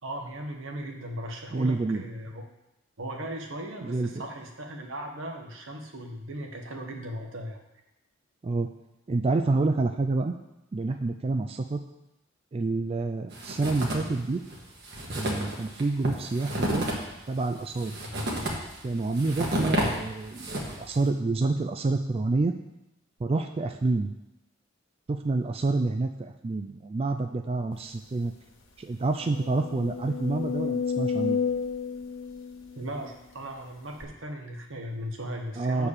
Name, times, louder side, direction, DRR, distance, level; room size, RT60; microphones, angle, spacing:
voice 1, 0.0-2.4 3.0-7.6 32.8-35.9, right 1 dB, 75° right, 3 dB, 1.3 m, -37 dB
voice 2, 1.5-2.0 3.8-4.1 8.4-8.7 9.1-10.3 10.7-11.8 12.5-14.4 15.2-16.9 17.3-18.0 18.8-22.5 23.2-24.1 25.1-28.3 28.8-31.4 35.6-35.9, right 3 dB, 30° right, 5 dB, 0.3 m, -28 dB
sound 1, 13.3-14.2 14.5-14.6 14.8-20.9, right 1 dB, 55° right, 1.6 m, -31 dB
sound 2, 28.0-28.1 28.5-28.6 29.1-33.3 34.0-34.1, left 6 dB, 75° left, 1.2 m, -31 dB
7.2 x 4.6 x 6.6 m, 0.94 s
head